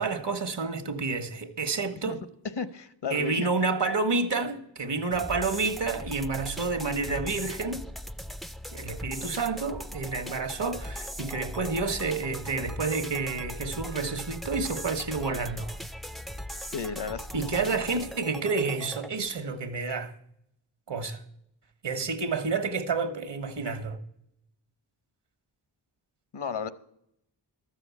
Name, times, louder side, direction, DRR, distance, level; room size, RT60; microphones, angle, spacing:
voice 1, 0.0-2.2 3.1-7.8 8.7-15.8 17.3-20.1 20.9-21.2 21.8-24.0, right 4 dB, 70° right, 1.4 m, -29 dB
voice 2, 2.6-3.5 16.7-17.5 26.3-26.7, left 6 dB, 65° left, 0.9 m, -33 dB
sound 1, 5.1-19.1, equal, ahead, 0.4 m, -39 dB
13.0 x 7.0 x 8.3 m
wide cardioid pair, 90°, 44 cm